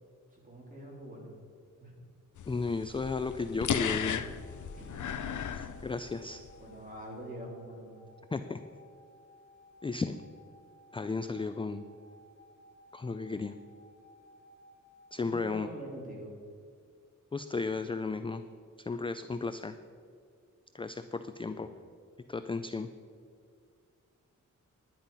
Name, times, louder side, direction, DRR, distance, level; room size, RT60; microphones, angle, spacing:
voice 1, 0.3-1.3 1.8-1.9 4.8-5.2 6.6-8.0 15.2-16.3 21.5-21.7, equal, 25° right, -3 dB, 3.4 m, -45 dB
sound 1, 2.4-6.5, left 8 dB, 70° left, 0.7 m, -36 dB
voice 2, 2.5-4.2 5.8-6.4 8.3-8.6 9.8-10.2 10.9-11.8 12.9-13.5 15.1-15.7 17.3-18.4 18.8-19.7 20.7-21.7 22.3-22.9, left 4 dB, 15° left, 10 dB, 0.3 m, -34 dB
sound 2, 3.6-15.3, left 1 dB, 40° left, 3.0 m, -59 dB
10.5 x 10.5 x 5.6 m, 2.2 s
wide cardioid pair, 155°, 32 cm